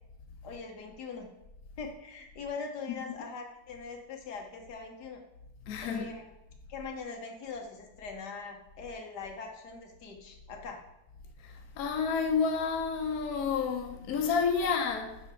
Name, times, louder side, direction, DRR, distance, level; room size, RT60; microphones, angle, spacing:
voice 1, 0.4-1.3 1.8-5.2 5.8-6.3 6.7-10.8 14.6-14.7, left 4 dB, 85° left, 1.7 m, -42 dB
voice 2, 5.7-6.1 11.4-15.2, left 5 dB, 70° left, 1.3 m, -30 dB
7.7 x 5.5 x 3.7 m
omnidirectional pair, 1.7 m